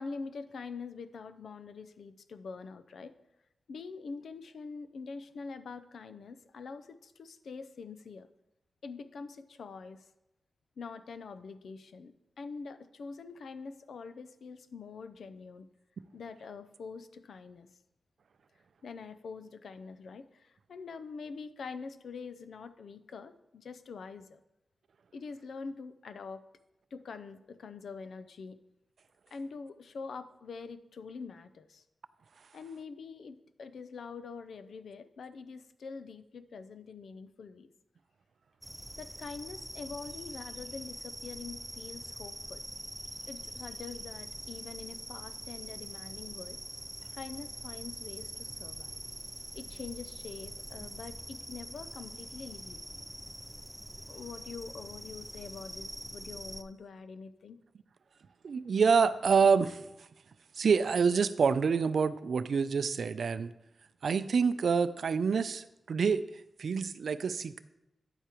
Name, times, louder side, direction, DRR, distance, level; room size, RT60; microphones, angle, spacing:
voice 1, 0.0-3.1 3.7-8.3 8.8-10.0 10.8-15.7 16.1-17.7 18.8-24.4 25.1-26.4 26.9-28.6 29.3-31.8 32.5-37.7 39.0-42.6 43.3-46.6 47.1-49.0 49.5-52.9 54.1-57.6, left 4 dB, 80° left, 11 dB, 0.5 m, -45 dB
sound 1, 38.6-56.6, equal, 5° right, 0.5 m, -44 dB
voice 2, 58.4-59.8 60.6-63.5 64.0-66.2 66.6-67.6, right 5 dB, 70° right, 13 dB, 0.4 m, -27 dB
9.9 x 8.1 x 3.0 m, 0.91 s
wide cardioid pair, 85°, 0 cm